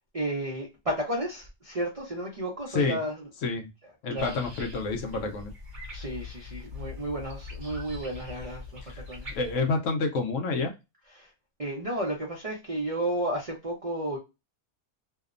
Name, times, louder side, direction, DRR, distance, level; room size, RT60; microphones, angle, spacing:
voice 1, 0.1-3.2 4.1-4.3 5.9-8.8 9.1-9.3 11.2-11.3 11.6-14.2, right 1 dB, 70° right, 0.3 m, -32 dB
voice 2, 4.0-5.5 8.8-9.0 9.3-10.7, left 3 dB, 70° left, 0.8 m, -28 dB
sound 1, 4.2-9.6, left 4 dB, 35° right, 0.9 m, -42 dB
2.8 x 2.0 x 2.4 m
omnidirectional pair, 1.6 m